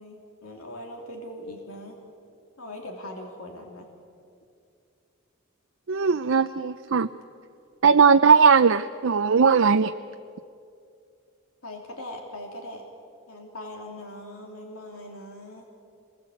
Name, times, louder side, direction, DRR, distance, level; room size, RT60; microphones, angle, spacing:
voice 1, 0.0-2.0 2.6-3.9 11.6-12.8 13.3-15.7, left 1 dB, 85° left, 2 dB, 3.0 m, -40 dB
voice 2, 5.9-7.1 7.8-9.9, right 5 dB, 65° right, 9 dB, 0.5 m, -18 dB
26.0 x 21.0 x 8.4 m, 2.5 s
head